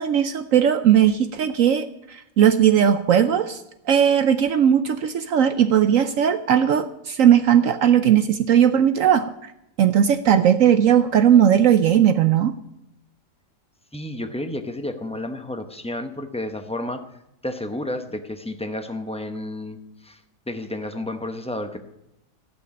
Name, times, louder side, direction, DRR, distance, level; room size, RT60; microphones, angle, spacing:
voice 1, 0.0-3.6 3.9-9.3 9.8-12.5, right 9 dB, 65° right, 10 dB, 0.9 m, -18 dB
voice 2, 13.9-17.0 17.4-19.8 20.0-20.2 20.5-21.8, left 1 dB, 5° left, 7 dB, 0.6 m, -31 dB
15.5 x 6.3 x 8.6 m, 0.86 s
omnidirectional pair, 1.7 m